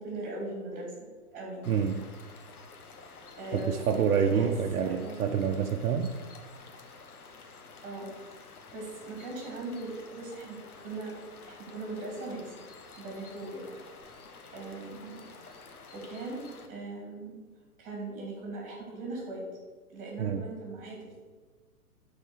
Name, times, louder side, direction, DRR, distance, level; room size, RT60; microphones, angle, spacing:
voice 1, 0.0-1.7 3.4-5.2 7.8-8.1 8.7-11.2 11.4-12.6 13.0-13.7 14.5-15.2 15.9-17.4 17.8-19.4 19.9-21.2, right 2 dB, 20° right, -1 dB, 2.8 m, -40 dB
sound 1, 1.6-16.7, left 4 dB, 75° left, 1.2 m, -50 dB
voice 2, 1.7-2.1 3.5-6.1 20.2-20.4, right 7 dB, 70° right, 4 dB, 0.8 m, -27 dB
8.5 x 4.2 x 6.4 m, 1.4 s
hypercardioid pair, 150°, 45 cm